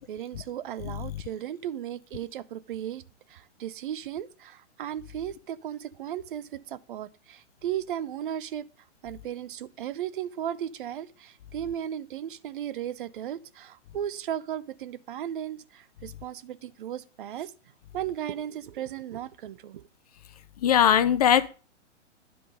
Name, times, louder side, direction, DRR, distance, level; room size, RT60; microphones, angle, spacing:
voice 1, 0.1-3.0 3.3-8.7 9.0-17.5 17.9-19.9, right 10 dB, 45° right, 0.5 m, -35 dB
voice 2, 20.6-21.5, left 9 dB, 35° left, 0.4 m, -20 dB
10.0 x 3.7 x 6.5 m
hypercardioid pair, 130°, 36 cm